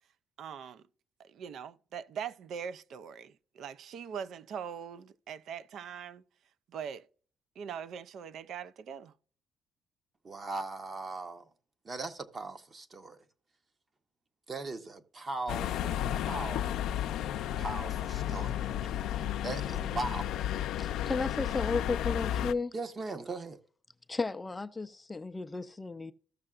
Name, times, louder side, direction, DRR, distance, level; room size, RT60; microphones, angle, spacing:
voice 1, 0.4-0.8 1.2-6.2 6.7-7.1 7.6-9.1, right 7 dB, 60° right, 0.4 m, -42 dB
voice 2, 10.2-11.5 11.8-13.2 14.5-16.9 17.6-18.7 19.4-20.3 22.7-23.6, right 2 dB, 30° right, 0.9 m, -39 dB
sound 1, 15.5-22.5, left 11 dB, 85° left, 0.5 m, -33 dB
voice 3, 20.8-22.7 24.1-26.1, left 4 dB, 15° left, 0.4 m, -34 dB
15.0 x 6.5 x 2.4 m
cardioid pair, 140°, 0 cm